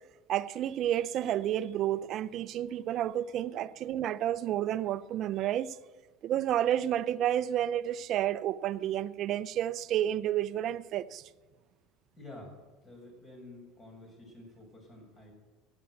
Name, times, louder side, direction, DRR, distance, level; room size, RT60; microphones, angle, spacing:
voice 1, 0.3-5.8 6.2-11.2, right 11 dB, 50° right, 0.6 m, -30 dB
voice 2, 12.1-12.6 12.8-15.3, left 2 dB, 30° left, 6.6 m, -49 dB
16.0 x 9.0 x 8.0 m
supercardioid pair, 105°, 0 cm